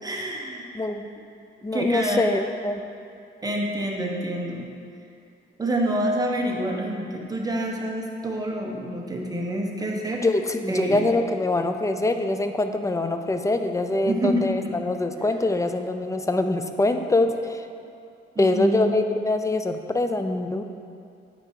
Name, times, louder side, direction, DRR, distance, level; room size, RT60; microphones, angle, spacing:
voice 1, 0.0-0.9 1.7-2.2 3.4-4.7 5.6-10.2 10.7-11.1 13.9-14.8 18.3-19.0, right 1 dB, 20° right, 0 dB, 1.2 m, -27 dB
voice 2, 1.6-2.8 10.2-17.7 18.4-20.6, left 2 dB, 15° left, 7 dB, 0.5 m, -24 dB
9.3 x 4.5 x 4.6 m, 2.5 s
cardioid pair, 90°, 20 cm